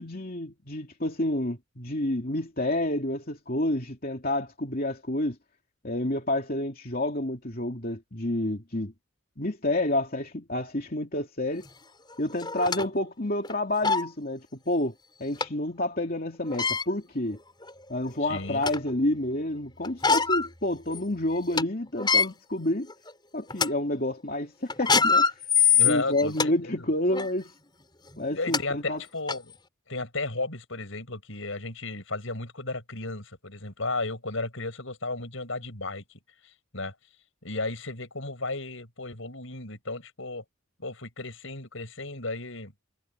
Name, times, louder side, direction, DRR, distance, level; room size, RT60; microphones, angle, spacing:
voice 1, 0.0-5.4 5.8-8.9 9.4-11.7 12.2-14.9 15.2-17.4 17.9-22.9 23.3-25.3 25.8-27.5 28.2-29.0, left 1 dB, 45° left, 3.0 m, -29 dB
sound 1, 11.7-11.8 12.4-12.9 13.4-13.5 13.8-14.1 15.4-15.5 16.4-16.9 17.6-17.7 18.2-18.9 19.8-20.5 20.9-21.0 21.4-21.6 22.0-22.3 22.9-23.1 23.5-23.7 24.7-26.5 27.1-27.3 28.1-28.2 28.5-28.6 29.3-29.4, left 5 dB, 20° left, 4.7 m, -23 dB
voice 2, 18.2-18.6 25.7-26.9 28.3-29.5 29.9-36.0 36.4-36.9 37.4-40.4 40.8-42.7, left 2 dB, 70° left, 6.9 m, -34 dB
head